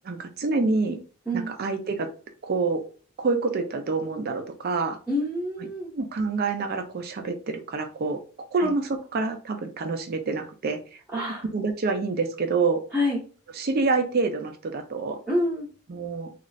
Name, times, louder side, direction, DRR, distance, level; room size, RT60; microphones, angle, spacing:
voice 1, 0.1-1.0 1.3-2.1 2.4-2.8 3.2-5.0 5.9-8.2 8.5-11.0 11.5-12.8 13.6-15.2 15.9-16.3, right 4 dB, 50° right, 6 dB, 0.4 m, -27 dB
voice 2, 5.1-5.9 8.6-8.7 11.1-11.4 12.9-13.2 15.3-15.7, left 1 dB, 5° right, -7 dB, 0.8 m, -27 dB
3.0 x 2.4 x 2.4 m, 0.38 s
head